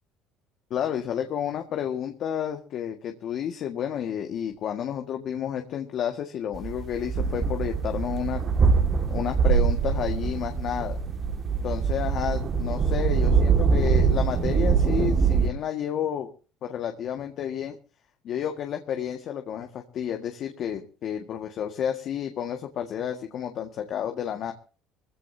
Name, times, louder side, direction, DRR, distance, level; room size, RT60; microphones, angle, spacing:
voice 1, 0.7-8.4 9.1-11.0 11.6-16.3 16.6-17.8 18.2-24.5, left 9 dB, 55° left, 4 dB, 1.8 m, -31 dB
sound 1, 6.5-15.5, right 6 dB, 35° right, 2.0 m, -23 dB
20.5 x 16.0 x 2.8 m, 0.36 s
supercardioid pair, 105°, 0 cm